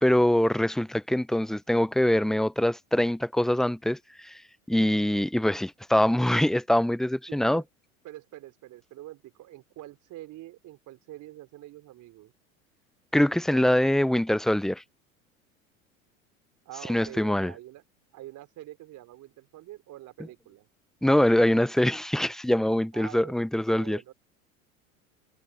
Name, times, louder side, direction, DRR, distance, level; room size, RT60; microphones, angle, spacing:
voice 1, 0.0-4.4 4.7-7.6 13.1-14.8 16.9-17.5 21.0-24.0, left 1 dB, ahead, 0.7 m, -24 dB
voice 2, 7.3-7.6 8.0-12.3 16.6-17.8 18.1-20.7 22.9-24.1, right 15 dB, 45° right, 4.5 m, -45 dB
figure-of-eight pair, 80°, 43 cm